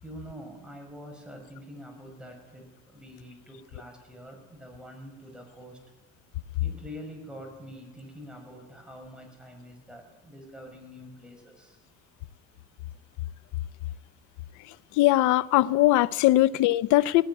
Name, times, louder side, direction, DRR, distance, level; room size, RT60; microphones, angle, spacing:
voice 1, 0.0-5.8 6.6-11.8, equal, 5° right, 6.6 m, -45 dB
voice 2, 14.6-17.3, left 16 dB, 85° left, 0.7 m, -21 dB
19.0 x 17.5 x 9.8 m
cardioid pair, 145°, 29 cm